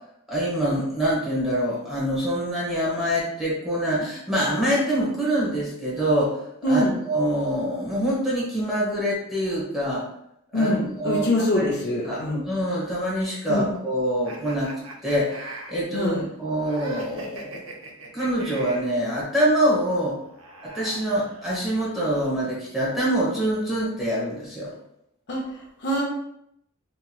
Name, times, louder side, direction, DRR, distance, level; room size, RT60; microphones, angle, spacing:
voice 1, 0.3-6.4 6.7-10.0 10.5-10.7 11.0-11.3 11.6-11.7 12.0-12.2 12.5-14.7 15.0-16.1 16.4-17.6 18.1-20.2 20.7-24.7, equal, ahead, -7 dB, 0.9 m, -25 dB
voice 2, 6.6-7.0 10.5-12.4 13.5-13.7 15.9-16.2 25.3-26.0, left 1 dB, 50° left, -3 dB, 0.6 m, -24 dB
sound 1, 14.2-18.9 20.1-21.8, right 2 dB, 60° right, 0.5 m, -40 dB
2.9 x 2.8 x 2.3 m, 0.77 s
head